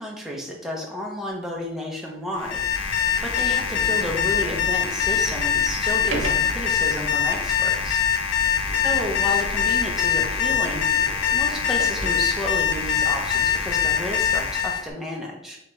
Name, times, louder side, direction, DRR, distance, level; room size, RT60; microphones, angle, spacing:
voice 1, 0.0-2.6 3.2-8.0 8.8-10.9 11.3-15.6, equal, ahead, -2 dB, 0.7 m, -31 dB
Sliding door, 1.6-1.7 2.4-2.5 3.0-12.9, right 2 dB, 65° right, 0.7 m, -37 dB
Alarm, 2.4-14.9, left 7 dB, 65° left, 0.4 m, -23 dB
3.8 x 3.4 x 3.1 m, 0.79 s
head